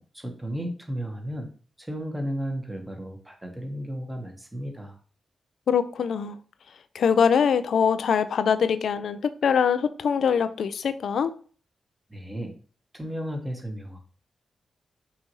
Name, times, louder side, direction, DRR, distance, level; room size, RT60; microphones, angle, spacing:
voice 1, 0.0-1.5 1.8-5.0 12.1-12.5 12.9-14.0, equal, 10° right, 1.1 m, -34 dB
voice 2, 5.7-6.4 6.9-11.3, left 7 dB, 75° left, 0.3 m, -23 dB
5.5 x 2.6 x 3.1 m
cardioid pair, 60°, 0 cm